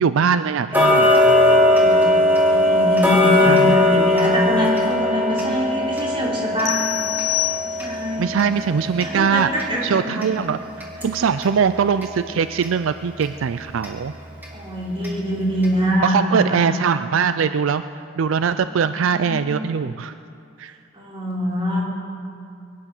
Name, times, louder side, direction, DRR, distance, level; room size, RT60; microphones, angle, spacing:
voice 1, 0.0-1.6 3.5-3.8 8.2-10.6 11.0-14.1 16.0-17.8 18.2-20.1 20.6-20.7, right 6 dB, 80° right, 12 dB, 0.4 m, -21 dB
Tick-tock, 0.7-11.6 12.0-12.1 12.6-12.7 13.2-13.3 13.8-13.9 14.4-14.5 15.0-15.1 15.6-15.7, left 1 dB, 10° right, 2.3 m, -19 dB
voice 2, 1.7-6.9 7.6-8.4 9.0-10.2 14.5-16.7 18.6-19.4 20.9-21.8, equal, 25° right, -5 dB, 3.7 m, -24 dB
sound 1, 6.7-8.2, left 19 dB, 55° left, 0.5 m, -26 dB
22.5 x 10.5 x 6.1 m, 2.5 s
head